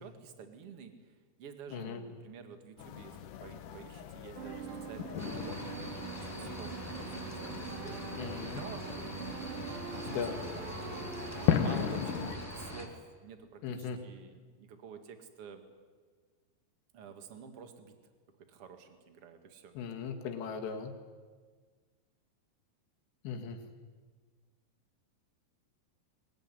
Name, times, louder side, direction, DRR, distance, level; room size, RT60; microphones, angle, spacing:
voice 1, 0.0-10.9 11.5-15.6 16.9-18.0 18.5-19.7, right 6 dB, 45° right, 7 dB, 2.2 m, -50 dB
sound 1, 2.8-12.4, left 10 dB, 65° left, 2.2 m, -37 dB
sound 2, 4.4-12.4, right 8 dB, 85° right, 3.9 m, -44 dB
sound 3, 5.2-12.9, equal, 5° left, 1.5 m, -44 dB
voice 2, 8.2-8.6 10.1-10.4 13.6-14.0 19.8-20.9 23.2-23.6, left 6 dB, 85° left, 4 dB, 4.1 m, -38 dB
21.0 x 20.5 x 9.8 m, 1.5 s
omnidirectional pair, 4.9 m